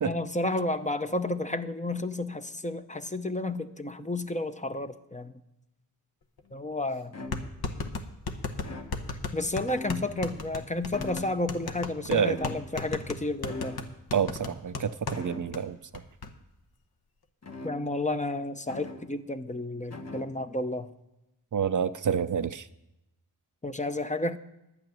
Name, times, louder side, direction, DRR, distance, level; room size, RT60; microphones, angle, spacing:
voice 1, 0.0-5.3 6.5-7.1 9.3-13.8 17.6-20.9 23.6-24.4, left 2 dB, 20° left, 9 dB, 0.7 m, -31 dB
sound 1, 6.4-6.5 7.3-15.2 15.5-15.6 15.9-16.3, left 4 dB, 65° left, 1.2 m, -35 dB
sound 2, 6.4-6.5 7.1-7.8 8.6-9.4 9.7-10.4 10.9-11.7 12.2-13.1 13.5-14.0 15.1-15.7 17.4-18.2 18.7-19.2 19.9-20.5, left 2 dB, 40° left, 1.4 m, -42 dB
voice 2, 14.1-15.8 21.5-22.7, right 7 dB, 50° right, 12 dB, 0.5 m, -28 dB
11.5 x 6.0 x 9.1 m, 0.92 s
wide cardioid pair, 80°, 40 cm